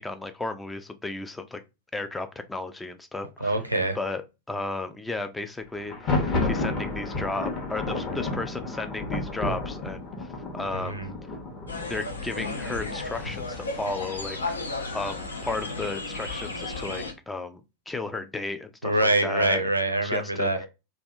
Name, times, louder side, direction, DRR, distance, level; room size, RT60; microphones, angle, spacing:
voice 1, 0.0-1.6 1.9-3.6 4.0-10.3 10.5-11.0 11.9-14.6 14.9-17.6 17.9-19.6 20.0-20.5, left 2 dB, 10° left, 0.4 m, -34 dB
voice 2, 3.4-4.0 10.7-11.1 18.8-20.7, right 2 dB, 85° right, 0.6 m, -25 dB
Thunder, 5.8-13.6, left 2 dB, 30° left, 0.9 m, -31 dB
sound 1, 11.7-17.1, left 3 dB, 75° left, 0.6 m, -34 dB
3.3 x 2.4 x 2.6 m
figure-of-eight pair, 90°, 0 cm